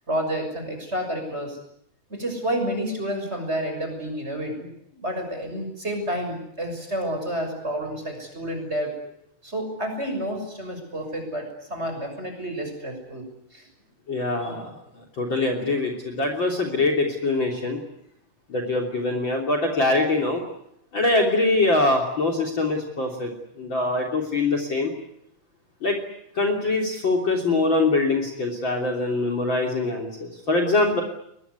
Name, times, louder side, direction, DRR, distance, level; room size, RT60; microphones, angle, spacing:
voice 1, 0.1-1.6 2.1-8.9 9.4-13.2 13.5-13.7, equal, 20° right, 4 dB, 6.8 m, -30 dB
voice 2, 14.1-14.7 15.0-17.8 18.5-20.4 20.9-23.3 23.6-24.9 25.8-26.0 26.4-31.0, left 2 dB, 35° left, 4 dB, 3.7 m, -23 dB
22.5 x 21.5 x 9.5 m, 0.75 s
omnidirectional pair, 3.6 m